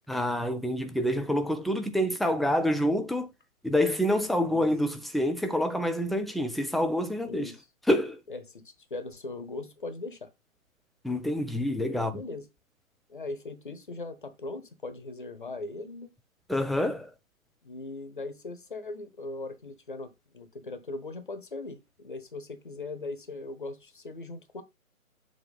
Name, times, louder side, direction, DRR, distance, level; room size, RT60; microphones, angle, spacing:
voice 1, 0.1-3.3 3.6-7.5 7.9-8.2 11.0-12.2 16.5-17.1, left 1 dB, ahead, 0.3 m, -27 dB
voice 2, 4.4-4.7 7.2-7.6 8.3-10.3 11.9-12.5 13.1-16.1 17.6-24.6, left 2 dB, 35° left, 1.0 m, -39 dB
7.4 x 2.9 x 5.5 m
figure-of-eight pair, 150°, 43 cm